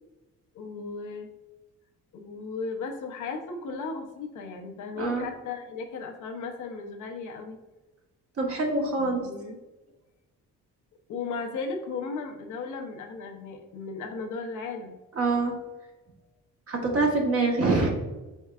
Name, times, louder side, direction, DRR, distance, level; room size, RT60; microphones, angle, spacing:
voice 1, 0.5-1.3 2.1-7.6 9.0-9.6 11.1-15.0, left 4 dB, 75° left, 3 dB, 0.8 m, -36 dB
voice 2, 5.0-5.3 8.4-9.2 15.2-15.5 16.7-17.9, right 3 dB, 50° right, 0 dB, 1.3 m, -25 dB
4.5 x 4.4 x 2.4 m, 1.1 s
cardioid pair, 90°, 30 cm